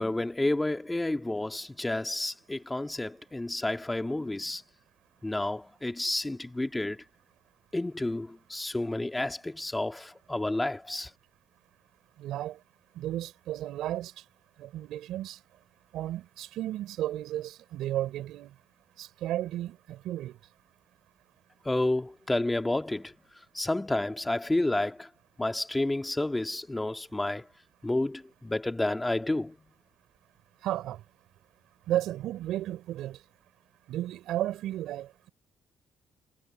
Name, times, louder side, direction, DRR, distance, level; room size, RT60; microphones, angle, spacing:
voice 1, 0.0-4.6 5.2-7.0 7.7-11.1 21.6-23.1 23.5-25.1 25.4-27.5 27.8-29.6, left 2 dB, 15° left, 2.0 m, -30 dB
voice 2, 12.2-12.6 13.0-14.1 14.6-15.4 15.9-18.5 19.0-20.4 30.6-31.0 31.9-33.2 33.9-35.3, right 13 dB, 85° right, 5.5 m, -33 dB
cardioid pair, 90°, 0 cm